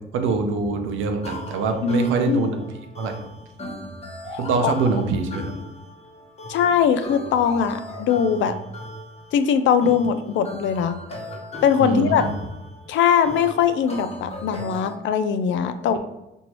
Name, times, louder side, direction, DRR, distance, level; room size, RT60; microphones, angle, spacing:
voice 1, 0.1-2.7 3.0-3.3 4.4-5.5 11.8-12.3, right 4 dB, 85° right, 6 dB, 0.6 m, -24 dB
sound 1, 1.2-14.9, left 1 dB, 30° left, 1.0 m, -38 dB
voice 2, 1.8-2.4 4.6-4.7 6.5-8.5 9.3-11.0 11.6-12.2 12.9-16.0, left 7 dB, 70° left, 10 dB, 0.4 m, -21 dB
4.5 x 2.7 x 3.0 m, 0.93 s
cardioid pair, 90°, 20 cm